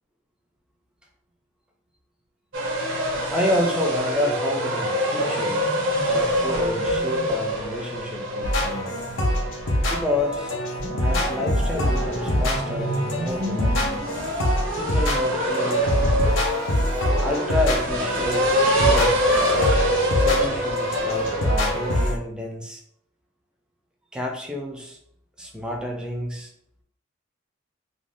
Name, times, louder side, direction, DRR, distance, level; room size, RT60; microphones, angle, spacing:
sound 1, 2.5-22.1, equal, 85° right, 0.7 m, -25 dB
voice 1, 3.3-5.6 6.1-8.9 9.9-10.5 11.0-14.0 14.8-16.4 17.2-18.5 18.7-19.2 20.1-22.8 24.1-25.0 25.4-26.5, left 1 dB, 5° right, 0 dB, 0.4 m, -29 dB
sound 2, 8.4-22.2, left 1 dB, 85° left, 0.7 m, -25 dB
2.6 x 2.2 x 3.3 m, 0.68 s
head